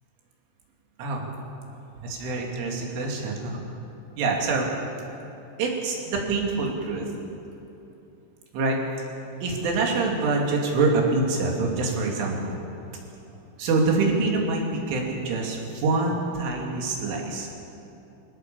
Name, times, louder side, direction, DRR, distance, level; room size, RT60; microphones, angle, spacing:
voice 1, 2.0-3.6 4.2-4.7 5.6-7.1 8.5-8.8 9.3-12.6 13.6-17.5, right 3 dB, 85° right, -1 dB, 5.3 m, -25 dB
23.5 x 18.0 x 7.2 m, 2.9 s
omnidirectional pair, 5.5 m